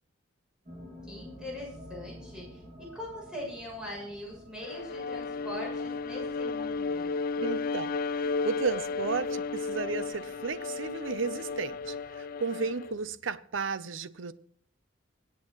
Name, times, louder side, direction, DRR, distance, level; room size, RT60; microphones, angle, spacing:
sound 1, 0.7-12.0, equal, 35° right, 2.7 m, -51 dB
voice 1, 1.0-2.6 2.9-7.1, left 1 dB, 5° right, 6.9 m, -41 dB
Bowed string instrument, 4.6-13.0, left 4 dB, 50° left, 0.4 m, -33 dB
voice 2, 7.4-14.3, right 4 dB, 80° right, 0.6 m, -34 dB
25.0 x 8.5 x 3.1 m
head